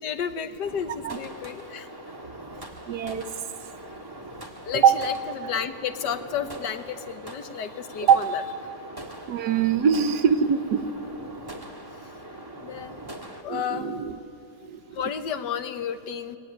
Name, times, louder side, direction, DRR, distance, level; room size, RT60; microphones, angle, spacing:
voice 1, 0.0-1.9 4.6-8.7 11.9-12.1 12.6-13.0 13.4-13.9 14.9-16.4, left 8 dB, 80° left, 10 dB, 1.7 m, -32 dB
sound 1, 0.6-13.4, right 1 dB, 15° right, 1.6 m, -42 dB
voice 2, 2.9-3.3 4.8-5.0 8.1-8.2 9.3-10.9 13.5-14.1 14.6-14.8, right 7 dB, 70° right, 12 dB, 1.4 m, -22 dB
23.0 x 18.5 x 9.6 m, 2.6 s
omnidirectional pair, 1.8 m